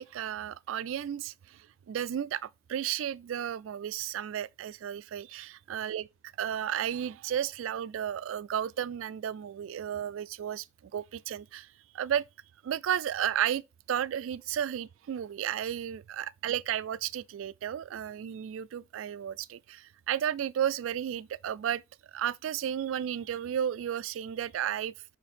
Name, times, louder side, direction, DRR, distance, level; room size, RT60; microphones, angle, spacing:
voice 1, 0.0-6.1 6.4-11.7 11.9-12.2 12.6-21.8 22.1-24.9, right 9 dB, 85° right, 0.3 m, -33 dB
5.7 x 4.4 x 4.2 m
head